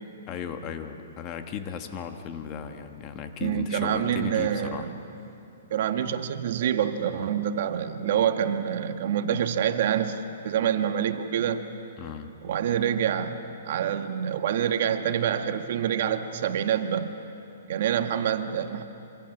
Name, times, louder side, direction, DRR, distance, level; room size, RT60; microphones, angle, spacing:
voice 1, 0.3-4.9 12.0-12.3, left 7 dB, 30° left, 6 dB, 1.3 m, -36 dB
voice 2, 3.4-4.9 5.7-11.6 12.4-13.3 13.6-17.1 17.7-18.8, right 9 dB, 55° right, 8 dB, 1.3 m, -26 dB
25.0 x 25.0 x 6.1 m, 2.7 s
hypercardioid pair, 150°, 0 cm